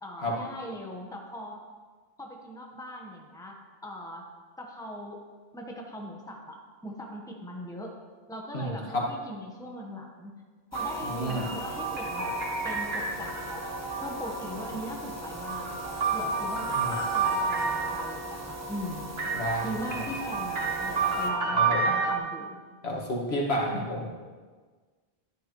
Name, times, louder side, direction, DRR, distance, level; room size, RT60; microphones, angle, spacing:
voice 1, 0.0-1.6 2.2-4.2 4.6-5.2 5.5-8.0 8.3-10.3 10.7-12.4 12.6-13.7 14.0-15.7 16.1-19.1 19.6-22.6 23.7-23.9, equal, 5° left, 0 dB, 1.1 m, -40 dB
voice 2, 8.5-9.0 11.0-11.5 16.7-16.9 19.3-19.7 21.5-21.9 22.8-24.1, equal, 80° left, -3 dB, 2.1 m, -30 dB
sound 1, 10.7-21.3, equal, 15° right, 0.8 m, -39 dB
sound 2, 10.7-14.5 15.2-18.3 19.2-22.2, right 4 dB, 70° right, 1.3 m, -30 dB
12.0 x 10.0 x 3.1 m, 1.5 s
omnidirectional pair, 1.0 m